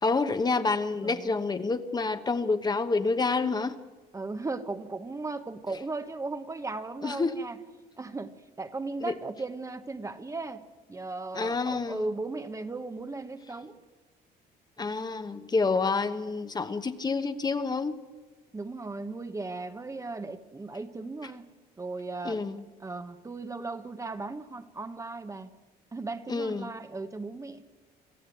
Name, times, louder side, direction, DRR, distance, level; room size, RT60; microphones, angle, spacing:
voice 1, 0.0-3.8 7.0-7.4 9.1-9.2 11.3-12.1 14.8-17.9 22.2-22.6 26.3-26.7, left 4 dB, 25° left, 9 dB, 1.1 m, -28 dB
voice 2, 1.0-1.3 4.1-7.6 8.0-10.6 10.9-13.8 15.6-15.8 18.5-21.5 21.8-22.4 22.8-25.5 25.9-27.7, right 3 dB, 20° right, 9 dB, 1.1 m, -37 dB
26.5 x 14.0 x 9.1 m, 1.3 s
cardioid pair, 110°, 17 cm